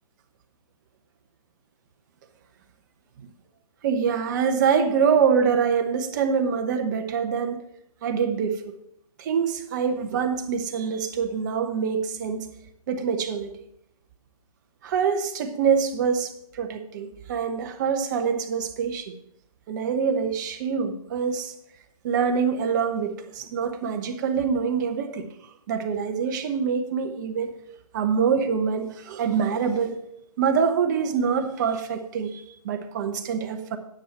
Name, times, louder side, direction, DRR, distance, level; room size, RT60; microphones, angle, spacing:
voice 1, 3.8-7.6 8.0-8.8 9.2-12.5 12.9-13.5 14.8-19.1 19.7-21.5 22.0-25.3 25.7-27.5 27.9-30.0 30.4-33.8, right 6 dB, 30° right, 7 dB, 1.0 m, -25 dB
10.0 x 7.3 x 4.5 m, 0.73 s
hypercardioid pair, 155°, 19 cm